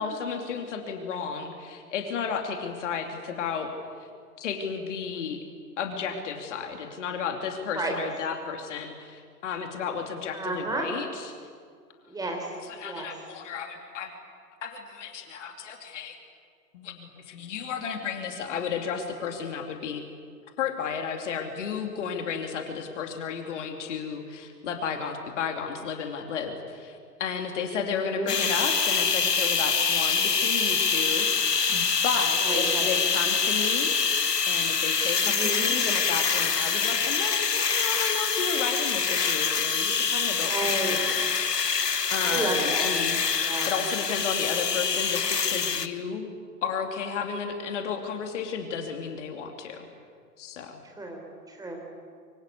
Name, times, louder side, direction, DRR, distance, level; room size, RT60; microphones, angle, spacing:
voice 1, 0.0-3.7 4.4-5.4 5.8-11.3 12.7-14.1 14.6-16.2 16.7-20.0 20.6-33.9 34.5-41.7 42.1-43.2 43.7-46.3 46.6-49.9 50.4-50.8, left 6 dB, 45° left, 4 dB, 2.8 m, -33 dB
voice 2, 10.3-10.9 12.1-12.5 12.8-13.1 27.7-28.3 32.4-32.9 35.2-35.7 40.4-41.0 42.2-43.0 43.4-43.7 51.0-51.9, right 2 dB, 5° right, 1 dB, 3.9 m, -32 dB
sound 1, 28.3-45.9, left 5 dB, 75° left, 1.3 m, -25 dB
24.5 x 24.5 x 8.5 m, 2.1 s
figure-of-eight pair, 110°, 48 cm